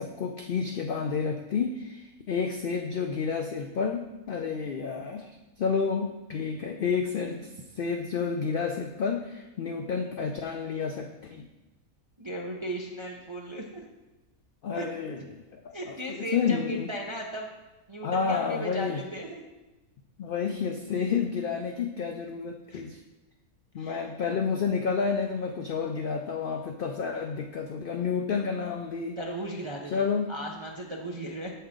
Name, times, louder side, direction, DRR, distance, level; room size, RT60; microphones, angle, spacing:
voice 1, 0.0-7.4 7.8-11.5 14.6-15.7 16.1-16.9 18.0-19.0 20.2-23.0 23.7-29.2 29.9-30.3, left 6 dB, 90° left, 4 dB, 0.4 m, -30 dB
voice 2, 12.2-13.8 14.7-14.9 15.7-17.5 17.9-19.4 22.7-22.8 23.8-24.1 29.2-29.9 30.3-31.5, right 1 dB, 50° right, -1 dB, 0.3 m, -36 dB
7.7 x 5.6 x 3.7 m, 1.1 s
omnidirectional pair, 1.5 m